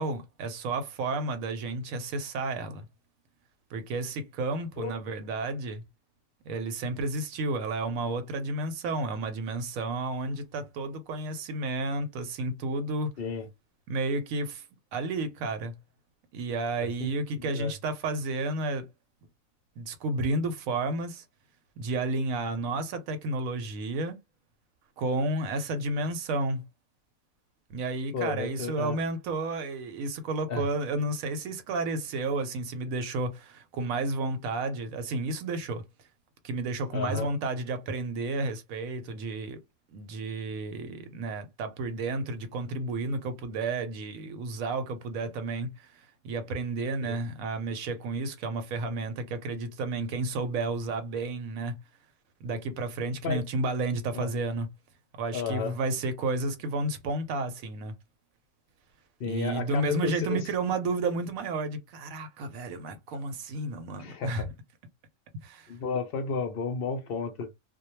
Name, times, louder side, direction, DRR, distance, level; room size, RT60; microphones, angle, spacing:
voice 1, 0.0-2.9 3.7-5.8 6.4-13.1 13.9-14.6 14.9-15.7 16.3-18.9 19.8-21.2 21.8-24.2 25.0-26.6 27.7-35.8 36.4-39.6 39.9-51.8 52.4-54.7 55.2-57.9 59.2-64.5 65.4-65.7, right 2 dB, 80° right, 1.0 m, -31 dB
voice 2, 17.4-17.7 28.1-29.0 30.5-30.7 36.9-37.3 47.0-47.2 53.2-53.4 54.1-54.3 55.3-55.7 59.2-60.4 64.0-64.5 65.7-67.5, left 5 dB, 60° left, 0.6 m, -32 dB
2.2 x 2.2 x 2.9 m
omnidirectional pair, 1.4 m